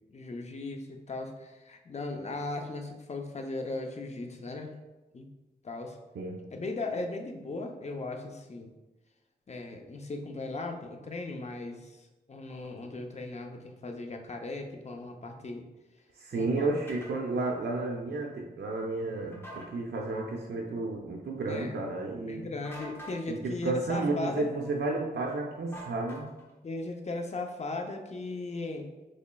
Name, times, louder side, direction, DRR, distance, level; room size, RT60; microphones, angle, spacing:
voice 1, 0.1-4.7 5.1-5.3 5.6-6.0 6.5-8.7 9.5-12.0 12.3-15.6 16.3-16.7 21.5-21.8 22.3-24.5 26.6-28.9, left 2 dB, 40° left, 3 dB, 0.5 m, -37 dB
voice 2, 16.2-22.5 23.3-26.3, right 2 dB, 75° right, -1 dB, 0.5 m, -32 dB
sound 1, 16.9-17.1 19.3-19.7 22.6-23.2 25.7-26.5, right 1 dB, 15° left, 0.8 m, -44 dB
4.0 x 3.1 x 2.2 m, 1.1 s
wide cardioid pair, 80°, 18 cm